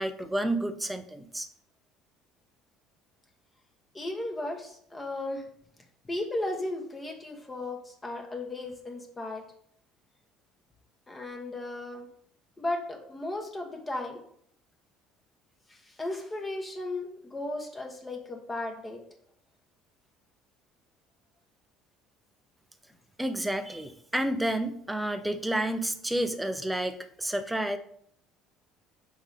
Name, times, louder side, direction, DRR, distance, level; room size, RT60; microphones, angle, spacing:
voice 1, 0.0-1.5 23.2-27.8, right 1 dB, 5° right, 8 dB, 0.6 m, -30 dB
voice 2, 3.9-5.4 6.0-9.4 11.1-12.1 12.6-14.2 15.7-19.0, left 2 dB, 15° left, 2 dB, 1.1 m, -35 dB
5.3 x 3.8 x 4.8 m, 0.65 s
cardioid pair, 115°, 0 cm